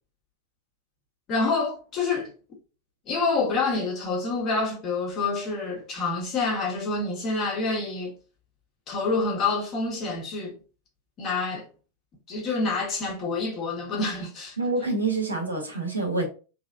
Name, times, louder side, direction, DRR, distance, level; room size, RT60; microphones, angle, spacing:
voice 1, 1.3-2.3 3.1-8.1 8.9-10.6 11.2-11.7 12.3-14.6, left 3 dB, 35° left, 1.6 m, -27 dB
voice 2, 14.6-16.3, right 3 dB, 85° right, 1.4 m, -27 dB
3.4 x 3.3 x 2.6 m
figure-of-eight pair, 90°, 0 cm